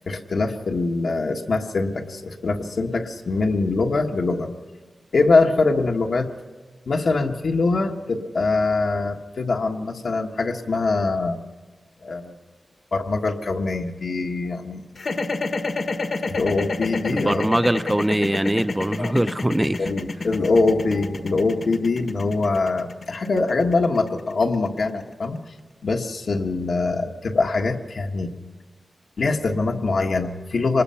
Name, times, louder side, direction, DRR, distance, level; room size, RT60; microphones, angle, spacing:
voice 1, 0.1-4.5 5.1-6.3 6.9-11.4 12.0-12.3 12.9-14.8 16.3-17.5 19.0-19.1 19.8-25.4 25.8-28.4 29.2-30.8, left 3 dB, 75° left, 2 dB, 1.4 m, -23 dB
sound 1, 15.0-25.1, left 3 dB, 60° left, 1.3 m, -28 dB
voice 2, 17.1-19.8, right 1 dB, 10° right, 13 dB, 0.5 m, -22 dB
25.0 x 20.5 x 5.7 m, 1.3 s
wide cardioid pair, 135°, 0 cm